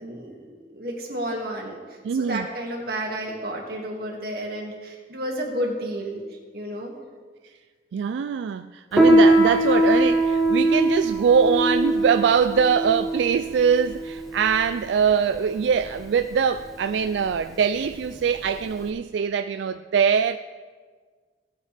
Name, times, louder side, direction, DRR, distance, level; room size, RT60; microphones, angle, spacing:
voice 1, 0.0-1.8 2.1-6.2 6.5-6.9, right 1 dB, 60° right, 0 dB, 2.1 m, -31 dB
voice 2, 2.0-2.5 7.9-20.4, right 6 dB, 90° right, 10 dB, 0.3 m, -22 dB
Piano, 8.9-18.9, right 1 dB, ahead, 1.5 m, -22 dB
17.5 x 8.8 x 3.4 m, 1.5 s
head